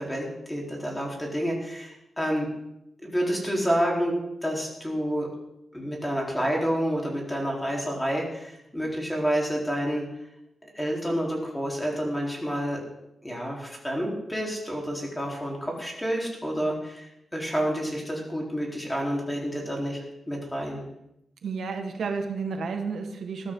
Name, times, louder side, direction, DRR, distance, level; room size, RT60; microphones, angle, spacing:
voice 1, 0.0-2.5 3.0-4.1 4.4-5.3 5.7-10.1 10.7-12.8 13.2-20.8, equal, 10° left, -2 dB, 4.0 m, -29 dB
voice 2, 21.4-23.5, right 5 dB, 80° right, 4 dB, 1.7 m, -31 dB
21.0 x 13.0 x 3.9 m, 0.83 s
wide cardioid pair, 150°, 0 cm